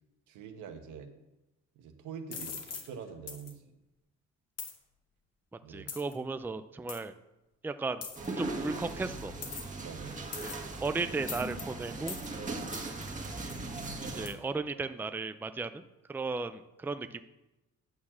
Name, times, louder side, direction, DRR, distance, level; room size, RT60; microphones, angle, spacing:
voice 1, 0.3-1.1 1.7-3.8 5.6-5.9 9.8-10.2, right 6 dB, 85° right, 6 dB, 1.3 m, -45 dB
sound 1, 2.3-2.9 3.3-3.5 4.6-4.8 5.9-6.1 6.9-7.0 8.0-8.3 9.4-9.8 10.3-10.7 11.3-11.6 12.1-12.3 12.7-12.9 13.5-13.6 14.3-14.4, left 6 dB, 55° left, 1.5 m, -41 dB
voice 2, 5.7-7.1 7.6-8.0 8.4-9.3 10.4-12.1 14.0-15.8 16.1-17.2, right 3 dB, 5° right, 10 dB, 0.4 m, -35 dB
sound 2, 8.1-14.3, right 2 dB, 25° right, 1.6 m, -39 dB
9.5 x 4.7 x 7.3 m, 0.97 s
cardioid pair, 90°, 30 cm